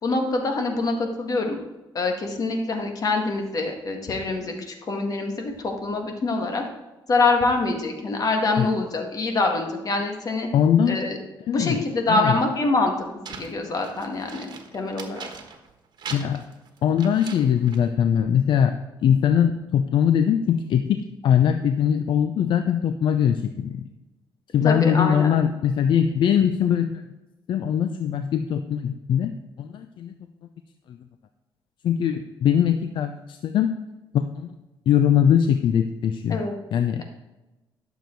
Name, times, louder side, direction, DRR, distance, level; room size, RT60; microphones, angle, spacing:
voice 1, 0.0-1.6 1.9-6.6 7.1-10.5 10.9-11.2 11.5-14.5 14.7-15.3 24.6-25.4 36.3-36.6, left 3 dB, 45° left, 3 dB, 1.9 m, -25 dB
voice 2, 10.5-11.0 11.5-11.8 12.1-12.3 16.1-16.4 16.8-23.8 24.5-27.0 27.5-29.3 29.6-30.1 30.9-31.0 31.8-33.8 34.1-34.5 34.9-36.4 36.7-37.0, left 8 dB, 70° left, 8 dB, 0.6 m, -21 dB
sound 1, 13.3-15.7 16.0-17.9, right 6 dB, 55° right, 1.4 m, -40 dB
11.5 x 7.1 x 4.6 m, 1.1 s
cardioid pair, 105°, 8 cm